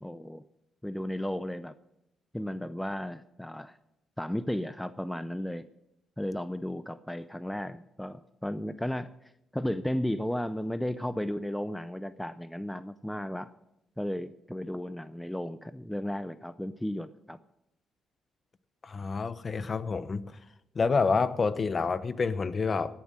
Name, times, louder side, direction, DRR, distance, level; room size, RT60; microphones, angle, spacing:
voice 1, 0.0-0.4 0.8-1.7 2.3-3.8 4.2-5.6 6.2-9.1 9.5-13.5 14.0-17.4, left 1 dB, 5° left, 13 dB, 0.5 m, -34 dB
voice 2, 18.8-20.2 20.7-22.9, left 4 dB, 35° left, 15 dB, 0.8 m, -28 dB
16.0 x 7.2 x 7.4 m, 0.86 s
cardioid pair, 90°, 0 cm